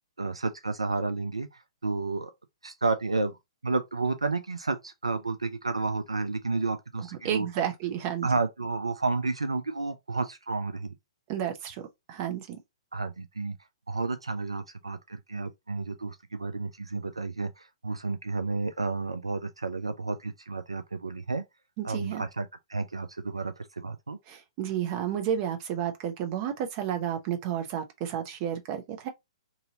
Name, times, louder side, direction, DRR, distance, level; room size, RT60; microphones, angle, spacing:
voice 1, 0.2-2.3 2.6-3.4 3.6-7.5 8.2-10.9 12.9-13.6 13.9-21.4 21.8-24.2, right 3 dB, 85° right, 0.4 m, -31 dB
voice 2, 7.2-8.3 11.3-11.8 12.1-12.6 21.8-22.2 24.3-29.1, right 9 dB, 35° right, 0.7 m, -31 dB
2.7 x 2.6 x 2.7 m
figure-of-eight pair, 120°, 3 cm